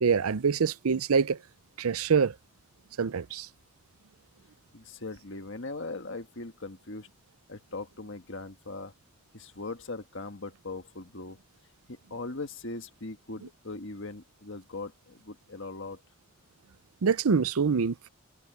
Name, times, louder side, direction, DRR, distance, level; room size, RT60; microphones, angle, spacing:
voice 1, 0.0-1.4 1.8-2.3 3.0-3.5 17.0-18.1, right 5 dB, 80° right, 0.6 m, -25 dB
voice 2, 4.7-7.1 7.5-8.9 9.3-11.4 11.9-16.0, left 3 dB, 60° left, 1.6 m, -40 dB
head